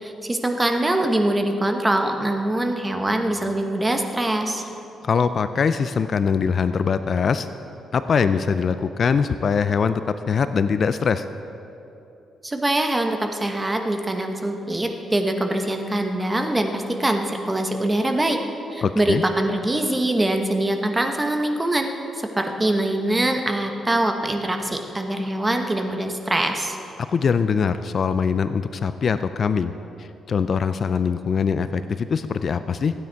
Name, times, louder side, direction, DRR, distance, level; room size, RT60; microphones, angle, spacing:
voice 1, 0.0-4.6 12.4-18.4 18.7-26.8, right 1 dB, 15° right, 4 dB, 1.0 m, -23 dB
voice 2, 5.0-7.5 7.9-10.0 10.3-11.2 18.8-19.2 27.1-29.7 30.0-32.9, left 6 dB, 45° left, 11 dB, 0.4 m, -22 dB
15.0 x 9.5 x 4.6 m, 2.9 s
cardioid pair, 115°, 0 cm